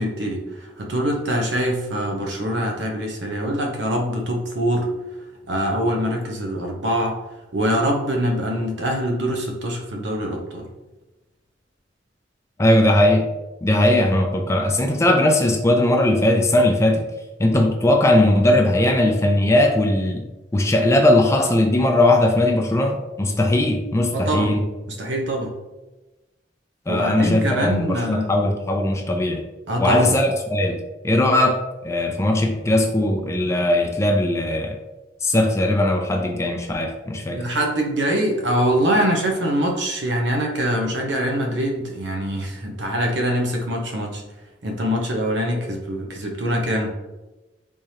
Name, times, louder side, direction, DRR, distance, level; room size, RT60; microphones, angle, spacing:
voice 1, 0.0-4.9 5.5-7.2 7.5-10.7 24.1-24.6 24.9-25.6 26.9-28.3 29.7-30.2 37.3-44.2 44.6-46.9, equal, 85° right, 1 dB, 0.8 m, -24 dB
voice 2, 12.6-13.3 13.6-17.0 17.4-20.2 20.5-24.6 26.9-29.4 29.8-30.8 31.0-34.8 35.2-37.4, left 1 dB, 15° left, 3 dB, 0.4 m, -19 dB
3.6 x 3.2 x 2.8 m, 1.1 s
head